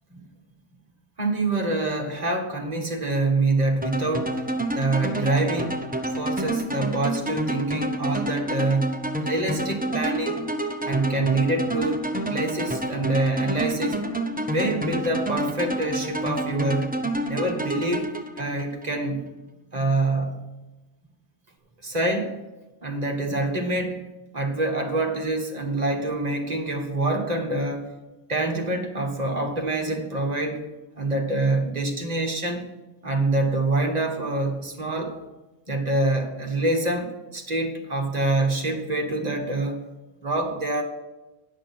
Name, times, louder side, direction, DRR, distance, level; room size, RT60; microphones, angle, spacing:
voice 1, 1.2-4.4 4.7-10.4 10.8-14.0 14.5-17.0 17.3-18.1 18.4-19.3 19.7-20.4 21.8-22.4 22.8-24.0 24.3-27.9 28.3-30.6 31.0-32.6 33.0-35.2 35.7-39.8 40.2-40.8, right 2 dB, 35° right, 2 dB, 1.6 m, -26 dB
sound 1, 3.8-18.9, right 1 dB, 10° right, 0.6 m, -29 dB
10.5 x 6.4 x 7.7 m, 1.1 s
omnidirectional pair, 1.2 m